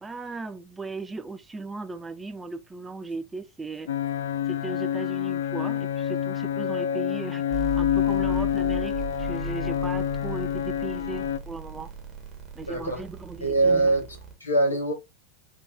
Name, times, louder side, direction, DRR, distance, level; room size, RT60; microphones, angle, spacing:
voice 1, 0.0-3.9 4.5-11.9 12.6-13.9, right 3 dB, 10° right, 0.4 m, -37 dB
sound 1, 3.9-11.4, left 10 dB, 60° left, 0.3 m, -27 dB
sound 2, 7.5-14.3, right 3 dB, 30° right, 1.2 m, -37 dB
voice 2, 12.7-13.0 13.4-14.1 14.4-14.9, right 2 dB, 80° left, 1.3 m, -22 dB
3.7 x 2.8 x 2.4 m
figure-of-eight pair, 90°, 0 cm